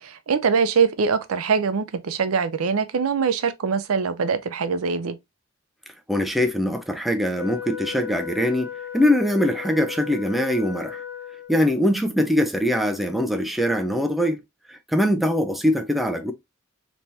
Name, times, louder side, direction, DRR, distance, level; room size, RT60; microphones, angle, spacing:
voice 1, 0.0-5.2, right 5 dB, 85° right, 0.5 m, -23 dB
voice 2, 6.1-11.0 11.5-14.4 14.7-16.3, left 1 dB, ahead, 0.4 m, -22 dB
Wind instrument woodwind instrument, 7.3-11.7, left 9 dB, 60° left, 0.7 m, -36 dB
3.4 x 3.0 x 2.6 m
head